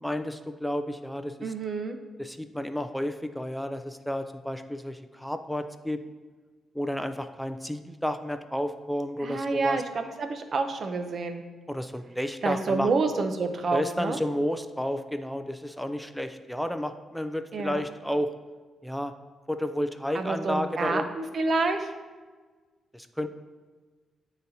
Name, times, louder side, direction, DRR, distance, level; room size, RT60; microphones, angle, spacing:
voice 1, 0.0-1.5 2.2-6.0 6.7-9.8 11.7-12.9 13.7-18.3 18.8-19.1 19.5-21.0 22.9-23.3, equal, ahead, 8 dB, 0.3 m, -31 dB
voice 2, 1.4-2.0 9.2-11.4 12.4-14.2 17.5-17.8 20.1-21.9, right 3 dB, 50° right, 6 dB, 0.6 m, -28 dB
9.3 x 3.9 x 2.8 m, 1.4 s
cardioid pair, 105°, 0 cm